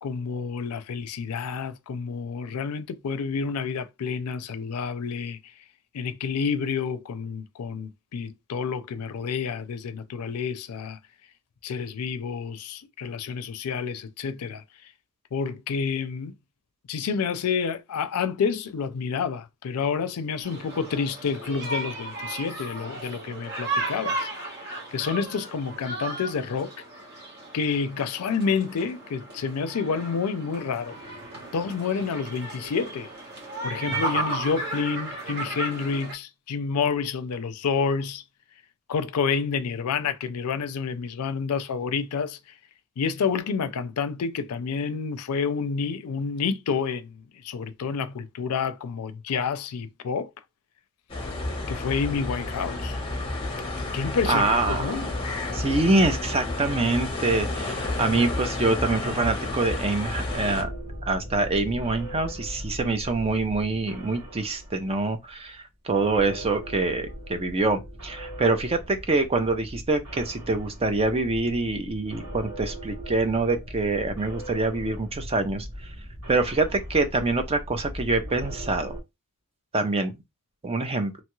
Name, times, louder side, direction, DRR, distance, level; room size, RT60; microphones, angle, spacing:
voice 1, 0.0-5.4 5.9-11.0 11.6-14.6 15.3-16.3 16.9-24.3 24.9-26.7 27.5-31.0 31.5-33.1 33.6-38.2 38.9-42.4 43.0-50.3 51.7-53.0 53.9-55.1, left 5 dB, 85° left, 0.4 m, -29 dB
sound 1, 20.4-36.1, right 2 dB, 50° right, 1.1 m, -34 dB
sound 2, 51.1-60.6, left 2 dB, 25° left, 0.9 m, -31 dB
voice 2, 54.3-55.0 55.5-60.7 61.0-75.7 76.3-79.0 79.7-80.1 80.6-81.1, right 3 dB, 25° right, 0.5 m, -25 dB
sound 3, 60.2-65.6 65.9-79.0, equal, 80° right, 1.2 m, -39 dB
2.9 x 2.3 x 3.0 m
head